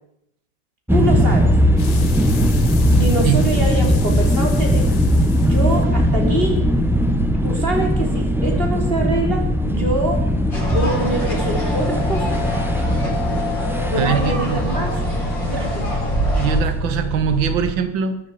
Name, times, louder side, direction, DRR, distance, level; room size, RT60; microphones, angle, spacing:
sound 1, 0.9-17.7, equal, ahead, 0.9 m, -19 dB
voice 1, 0.9-1.5 3.0-4.9 5.4-6.6 7.4-10.2 10.7-12.3 13.9-15.0 15.5-16.0, right 1 dB, 30° right, 1 dB, 3.9 m, -24 dB
sound 2, 1.8-8.3, left 7 dB, 45° left, 1.1 m, -35 dB
sound 3, 10.5-16.6, left 1 dB, 75° left, 8.1 m, -25 dB
voice 2, 14.0-14.6 16.4-18.2, right 8 dB, 90° right, 10 dB, 1.8 m, -22 dB
22.0 x 12.5 x 5.0 m, 0.78 s
omnidirectional pair, 2.0 m